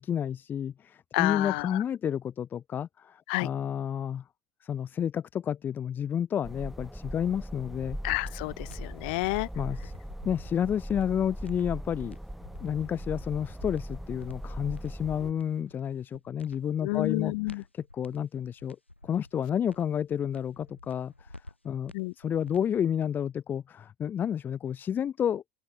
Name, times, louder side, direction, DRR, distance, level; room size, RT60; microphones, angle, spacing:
voice 1, 0.0-4.2 4.6-8.0 9.6-9.9 10.2-12.2 12.6-17.6 17.9-18.8 19.0-21.3 21.6-25.4, left 9 dB, 30° left, 0.6 m, -30 dB
voice 2, 1.1-1.8 3.3-3.5 8.0-9.5 16.8-17.6 21.9-22.1, left 27 dB, 60° left, 1.0 m, -29 dB
sound 1, 6.4-15.3, equal, ahead, 2.4 m, -40 dB
sound 2, 8.2-22.9, left 1 dB, 90° left, 3.8 m, -52 dB
open air
figure-of-eight pair, 65°, 6 cm